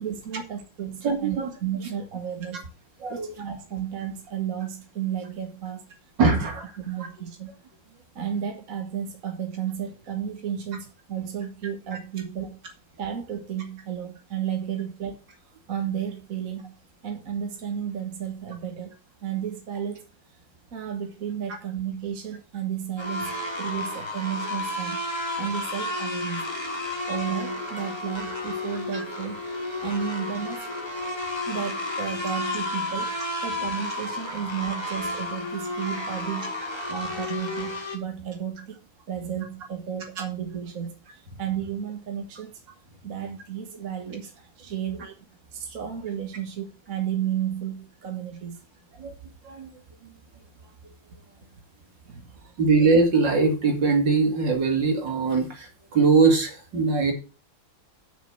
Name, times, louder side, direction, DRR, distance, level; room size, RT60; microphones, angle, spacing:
voice 1, 0.0-2.6 3.1-5.9 6.3-6.5 6.9-7.5 8.2-12.6 13.0-15.2 15.7-16.7 17.0-18.9 19.2-20.1 20.7-25.0 25.4-26.5 27.1-29.4 29.8-30.7 31.5-38.8 39.1-42.5 43.0-45.1 45.5-48.6 52.1-52.6, right 9 dB, 45° right, 3 dB, 1.8 m, -33 dB
voice 2, 1.0-1.5 3.0-3.3 6.2-6.6 28.9-29.0 49.0-49.1 49.4-49.7 52.6-57.1, right 4 dB, 65° right, 3 dB, 3.0 m, -21 dB
sound 1, 23.0-38.0, left 1 dB, 15° left, 1.8 m, -32 dB
6.9 x 6.3 x 7.7 m, 0.34 s
omnidirectional pair, 2.2 m